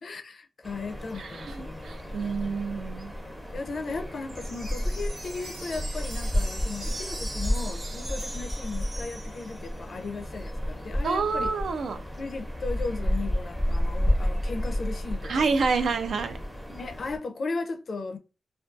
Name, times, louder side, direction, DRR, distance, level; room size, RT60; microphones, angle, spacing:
voice 1, 0.0-2.6 3.2-11.5 12.2-15.5 16.7-18.2, left 3 dB, 55° left, 0.4 m, -36 dB
sound 1, 0.6-17.2, equal, ahead, 0.5 m, -31 dB
voice 2, 1.2-3.1 11.0-12.0 15.2-16.4, right 4 dB, 75° right, 0.3 m, -28 dB
sound 2, 4.3-9.8, right 1 dB, 45° right, 0.6 m, -41 dB
2.3 x 2.2 x 2.5 m
wide cardioid pair, 120°, 0 cm